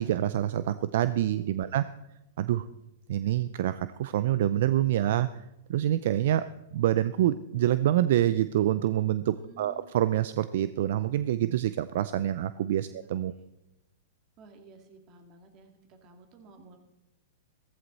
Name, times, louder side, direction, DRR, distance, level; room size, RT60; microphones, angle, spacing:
voice 1, 0.0-1.8 2.4-2.7 3.1-5.3 5.7-6.5 6.7-13.3, right 12 dB, 65° right, 14 dB, 0.5 m, -26 dB
voice 2, 1.2-1.8 9.3-9.9 12.6-13.5 14.4-16.8, right 3 dB, 40° right, 5 dB, 2.7 m, -54 dB
15.0 x 14.5 x 4.1 m, 0.91 s
hypercardioid pair, 125°, 0 cm